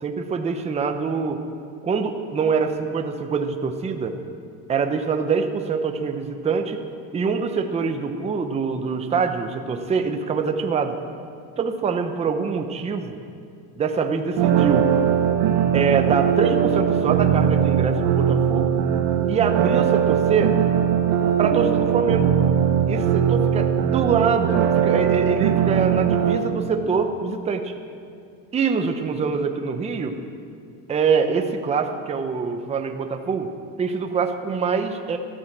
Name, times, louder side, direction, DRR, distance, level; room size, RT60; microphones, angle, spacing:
voice 1, 0.0-1.4 1.8-4.2 4.7-6.8 7.1-10.9 11.6-13.2 13.8-14.9 15.7-18.7 19.3-20.5 21.4-22.3 22.9-27.7 28.5-30.1 30.9-33.5 33.8-35.2, right 5 dB, 15° right, 5 dB, 0.7 m, -24 dB
sound 1, 14.4-26.4, right 9 dB, 65° right, 1.7 m, -20 dB
13.0 x 12.5 x 7.3 m, 2.4 s
cardioid pair, 155°, 41 cm